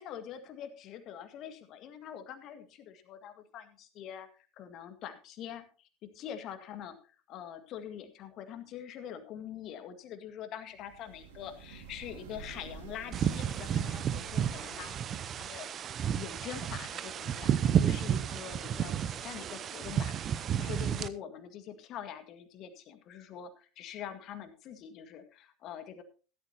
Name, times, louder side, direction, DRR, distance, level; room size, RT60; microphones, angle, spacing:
voice 1, 0.0-4.3 4.6-5.9 6.1-15.7 16.1-26.0, left 9 dB, 50° left, 9 dB, 1.9 m, -44 dB
sound 1, 10.7-15.4, right 6 dB, 70° right, 2.4 m, -50 dB
sound 2, 13.1-21.1, right 9 dB, 40° right, 0.8 m, -31 dB
15.0 x 13.0 x 2.9 m, 0.34 s
figure-of-eight pair, 75°, 0 cm